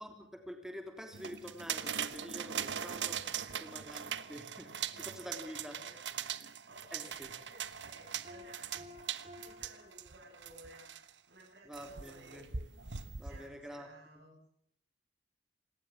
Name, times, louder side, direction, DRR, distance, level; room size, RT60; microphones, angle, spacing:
voice 1, 0.0-4.0 4.3-5.7 6.9-7.3 11.7-12.5 13.2-13.9, equal, 5° right, 4 dB, 3.3 m, -47 dB
sound 1, 1.1-11.1 11.7-13.5, right 8 dB, 85° right, 1.3 m, -41 dB
voice 2, 5.2-6.3 6.7-8.9 9.4-10.9 11.3-12.4 13.2-14.4, right 1 dB, 65° right, -2 dB, 7.4 m, -57 dB
Piano, 8.2-10.8, left 1 dB, 35° right, 4.2 m, -54 dB
26.5 x 19.0 x 7.5 m, 0.73 s
head